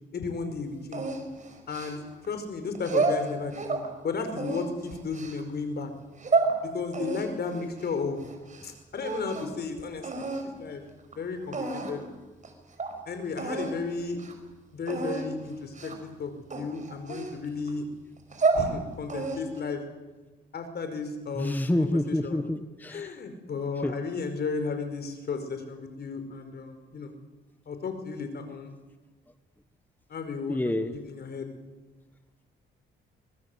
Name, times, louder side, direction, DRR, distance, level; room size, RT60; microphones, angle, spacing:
voice 1, 0.1-1.1 1.7-5.9 6.6-8.2 8.6-10.8 11.2-12.0 13.1-14.2 14.7-15.9 16.2-17.9 18.5-19.8 20.5-22.4 22.9-27.2 27.7-28.7 30.1-31.5, left 4 dB, 55° left, 8 dB, 5.0 m, -34 dB
sound 1, 0.9-2.3 2.8-3.9 4.3-5.4 6.0-6.5 6.9-8.7 9.0-9.6 10.0-10.5 11.1-11.2 11.5-12.1 12.4-12.5 12.8-12.9 13.4-13.8 14.1-14.3 14.9-15.3 15.7-16.1 16.5-17.7 18.2-18.7 19.1-19.6, right 4 dB, 40° right, 5.4 m, -29 dB
voice 2, 21.4-23.2 23.8-23.9 30.5-30.9, left 1 dB, 10° left, 10 dB, 1.2 m, -28 dB
24.5 x 21.0 x 8.2 m, 1.2 s
cardioid pair, 90°, 20 cm